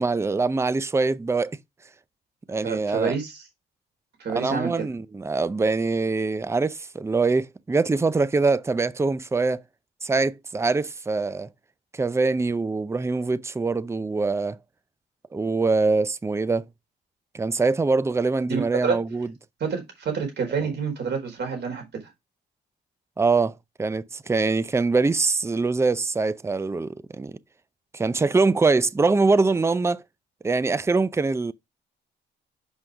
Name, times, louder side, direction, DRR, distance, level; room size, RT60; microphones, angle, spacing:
voice 1, 0.0-1.6 2.5-3.2 4.3-9.6 10.0-11.5 11.9-14.6 15.3-16.7 17.3-19.3 23.2-23.5 23.8-27.4 27.9-30.0 30.4-31.5, right 3 dB, 15° right, 0.5 m, -23 dB
voice 2, 2.6-3.4 4.2-4.7 18.5-19.0 19.6-21.9, right 5 dB, 60° right, 4.3 m, -28 dB
6.3 x 5.7 x 5.0 m
cardioid pair, 90°, 20 cm